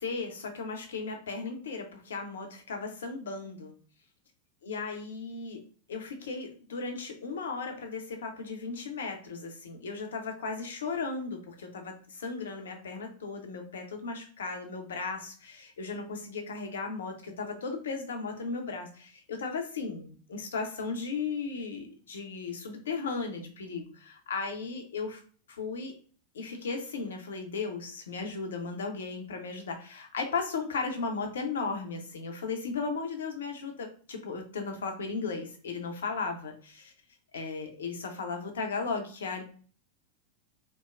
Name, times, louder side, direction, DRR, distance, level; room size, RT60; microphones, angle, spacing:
voice 1, 0.0-3.7 4.6-5.6 5.9-25.2 25.5-25.9 26.3-36.9 37.3-39.4, left 4 dB, 65° left, 4 dB, 0.6 m, -36 dB
3.0 x 2.0 x 2.4 m, 0.43 s
figure-of-eight pair, 90°, 0 cm